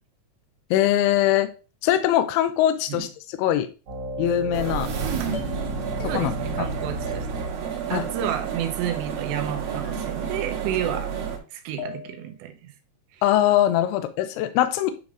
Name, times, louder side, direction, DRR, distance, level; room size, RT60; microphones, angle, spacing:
voice 1, 0.7-1.5 1.8-3.7 4.2-4.9 6.1-6.7 7.9-8.0 13.2-14.9, left 12 dB, 80° left, 2.4 m, -22 dB
sound 1, 3.9-7.8, left 2 dB, 50° right, 2.1 m, -33 dB
sound 2, 4.5-11.4, right 7 dB, 65° right, 2.6 m, -31 dB
voice 2, 5.0-5.5 6.1-7.3 7.9-11.1 11.5-12.7, right 10 dB, 90° right, 3.0 m, -30 dB
sound 3, 5.3-5.7 6.0-6.5 7.1-7.7 8.0-8.6 8.9-9.5 9.8-10.4 10.7-11.4 11.8-12.3, left 7 dB, 65° left, 3.1 m, -43 dB
9.3 x 4.9 x 2.5 m
omnidirectional pair, 4.9 m